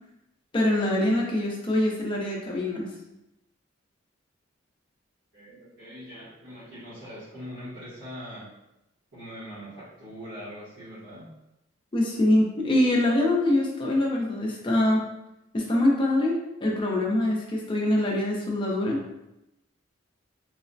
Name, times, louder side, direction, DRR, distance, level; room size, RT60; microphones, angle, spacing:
voice 1, 0.5-2.9 11.9-15.0 15.5-19.0, left 1 dB, 25° left, -2 dB, 0.5 m, -24 dB
voice 2, 5.3-8.5 9.1-11.3, equal, 60° right, -12 dB, 0.9 m, -42 dB
3.1 x 2.0 x 2.5 m, 0.91 s
head